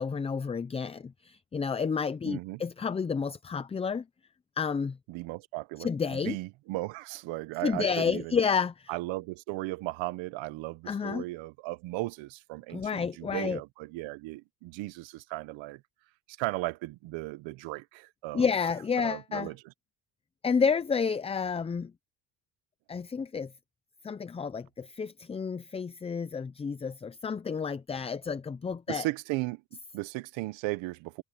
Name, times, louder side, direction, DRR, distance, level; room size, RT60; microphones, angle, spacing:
voice 1, 0.0-4.0 4.6-5.0 5.8-6.4 7.6-8.9 10.9-11.2 12.7-13.6 18.3-19.5 20.4-21.9 22.9-23.5 24.0-29.1, left 6 dB, 15° left, 0.4 m, -30 dB
voice 2, 2.2-2.6 5.1-8.4 8.9-15.8 16.3-18.5 19.0-19.7 28.9-31.2, right 20 dB, 85° right, 1.1 m, -36 dB
cardioid pair, 125°, 44 cm